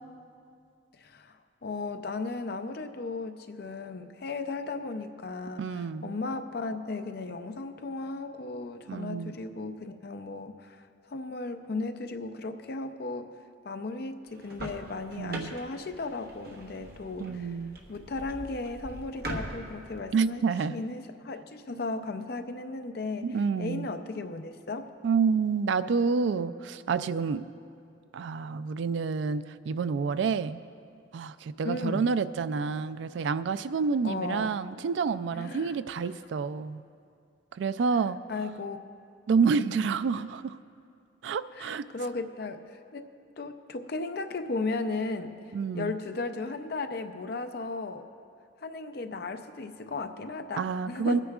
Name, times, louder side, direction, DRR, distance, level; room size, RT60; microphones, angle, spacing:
voice 1, 0.9-17.6 17.9-24.9 31.6-32.1 34.0-34.5 35.3-35.8 38.3-38.8 39.4-39.7 41.5-43.0 43.4-45.4 45.7-48.1 48.6-51.2, left 3 dB, 55° left, 7 dB, 0.5 m, -36 dB
voice 2, 5.6-6.1 8.9-9.3 15.2-15.5 17.2-17.8 20.1-20.8 23.2-23.9 25.0-27.4 28.1-30.6 31.1-36.8 37.5-38.2 39.3-40.6 41.2-41.8 45.5-45.9 50.6-51.2, right 5 dB, 70° right, 14 dB, 0.3 m, -28 dB
sound 1, 14.3-20.0, right 1 dB, 50° right, 1.1 m, -42 dB
23.5 x 9.7 x 2.4 m, 2.4 s
head